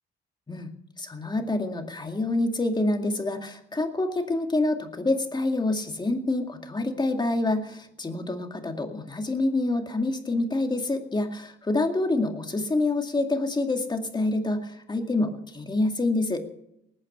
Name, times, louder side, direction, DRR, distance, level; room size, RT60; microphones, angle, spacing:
voice 1, 1.0-16.4, left 2 dB, 20° left, 4 dB, 2.2 m, -27 dB
19.5 x 9.1 x 6.7 m, 0.79 s
cardioid pair, 90°, 20 cm